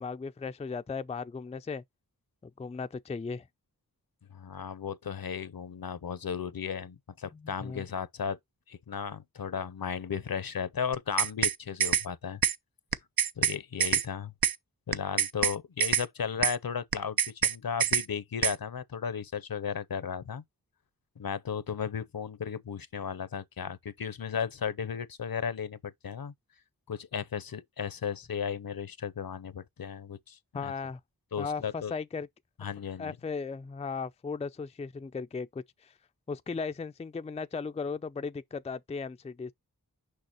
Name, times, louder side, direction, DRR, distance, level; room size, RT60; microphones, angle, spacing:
voice 1, 0.0-1.8 2.4-3.5 7.3-7.8 30.5-31.0 31.4-32.3 33.0-35.9 36.3-39.5, left 5 dB, 20° left, 0.4 m, -36 dB
voice 2, 4.3-8.4 8.7-12.4 13.4-14.3 14.9-20.4 21.2-26.3 26.9-30.7 31.3-31.9 32.6-33.2, left 7 dB, 70° left, 0.7 m, -35 dB
sound 1, 10.9-11.6 11.8-12.1 12.4-12.6 12.9-13.6 13.8-14.1 14.4-14.6 14.9-15.6 15.8-16.1 16.4-16.6 16.9-17.6 17.8-18.1 18.4-18.6, right 8 dB, 70° right, 0.6 m, -25 dB
6.6 x 5.5 x 3.0 m
wide cardioid pair, 55°, 37 cm